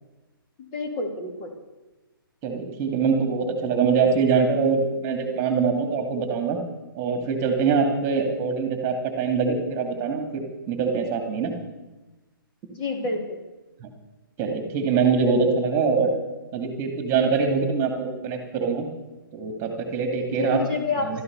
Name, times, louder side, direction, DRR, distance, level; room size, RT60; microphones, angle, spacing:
voice 1, 0.6-1.5 12.7-13.4 20.3-21.2, left 3 dB, 30° left, 3 dB, 2.6 m, -29 dB
voice 2, 2.4-6.6 6.9-10.4 10.7-11.5 13.8-13.9 14.4-16.1 16.5-18.9 19.3-20.6 21.1-21.2, right 5 dB, 25° right, 5 dB, 2.4 m, -23 dB
15.0 x 13.5 x 6.8 m, 1.1 s
figure-of-eight pair, 130°, 12 cm